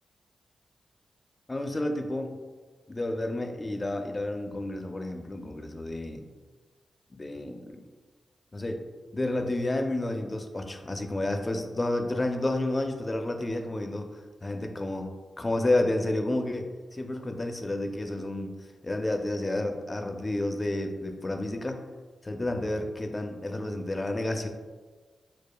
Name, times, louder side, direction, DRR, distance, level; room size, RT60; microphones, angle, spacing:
voice 1, 1.5-2.4 2.9-6.2 7.1-7.8 8.5-8.8 9.1-15.1 15.4-18.6 18.8-21.8 22.2-24.5, left 1 dB, 30° left, 5 dB, 0.4 m, -30 dB
4.8 x 2.1 x 2.2 m, 1.4 s
cardioid pair, 45°, 0 cm